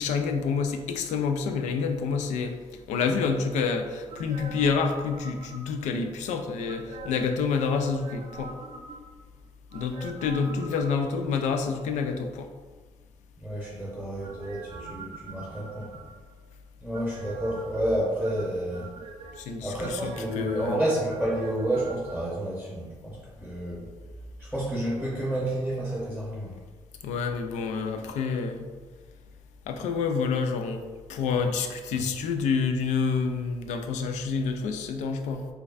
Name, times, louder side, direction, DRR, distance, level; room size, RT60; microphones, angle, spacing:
voice 1, 0.0-2.6 2.9-8.5 9.7-12.5 19.4-20.8 27.0-28.7 29.7-35.5, left 5 dB, 85° left, 6 dB, 0.4 m, -28 dB
sound 1, 4.1-5.9 6.7-7.4 7.8-9.3 9.7-11.4 14.2-16.3 16.9-17.8 18.2-19.4 19.8-22.2 22.5-22.6, right 3 dB, 60° right, 0.6 m, -44 dB
voice 2, 13.4-15.9 16.8-18.9 19.6-23.8 24.4-26.6, right 1 dB, 5° left, -5 dB, 0.8 m, -30 dB
4.4 x 2.3 x 2.5 m, 1.4 s
cardioid pair, 85°, 12 cm